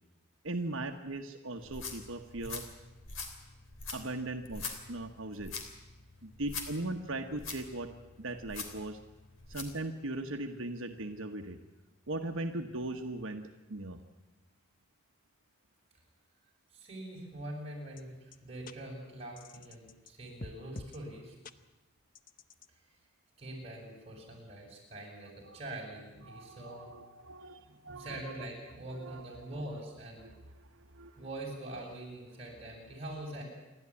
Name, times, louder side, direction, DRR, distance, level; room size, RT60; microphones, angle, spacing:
voice 1, 0.4-2.6 3.9-5.5 6.2-9.0 9.5-11.6 12.1-13.4 13.7-14.0 25.4-25.6 26.3-28.4 29.0-29.5 30.2-31.2, right 2 dB, 80° right, 4 dB, 1.3 m, -39 dB
sound 1, 1.6-9.8, left 4 dB, 80° left, 3.3 m, -44 dB
voice 2, 16.7-21.3 23.4-26.9 28.0-30.3 31.2-33.4, right 1 dB, 30° right, -2 dB, 7.2 m, -44 dB
sound 2, 18.0-18.1 18.3-18.4 18.7-18.8 19.4-20.1 20.4-21.0 21.4-21.5 22.1-22.7, left 3 dB, 40° left, 0.8 m, -46 dB
28.5 x 12.0 x 9.8 m, 1.1 s
head